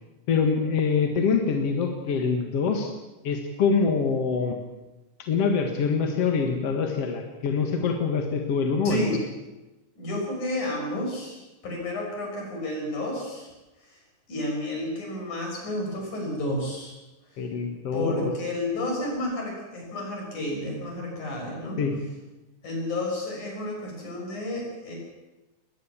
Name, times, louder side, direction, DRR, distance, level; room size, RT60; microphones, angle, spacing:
voice 1, 0.3-2.9 3.2-4.6 5.2-9.1 17.4-18.3 21.8-22.0, left 5 dB, 55° left, 4 dB, 2.6 m, -25 dB
voice 2, 8.8-9.2 10.0-11.4 11.6-13.5 13.9-14.0 14.3-16.9 17.9-21.8 22.6-25.0, left 1 dB, 70° left, 0 dB, 8.0 m, -31 dB
21.5 x 19.0 x 7.3 m, 1.1 s
omnidirectional pair, 3.6 m